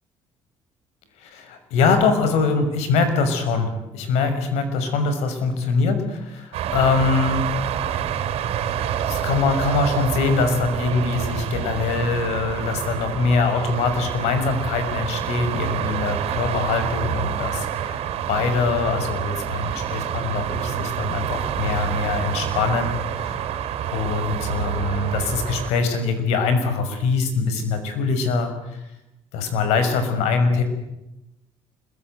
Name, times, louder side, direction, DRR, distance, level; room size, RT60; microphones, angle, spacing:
voice 1, 1.2-7.4 9.1-23.4 23.9-28.8 29.3-30.6, left 4 dB, 85° left, 9 dB, 6.1 m, -23 dB
sound 1, 6.5-25.7, right 9 dB, 70° right, 4.1 m, -27 dB
25.5 x 22.5 x 9.4 m, 0.90 s
cardioid pair, 100°, 11 cm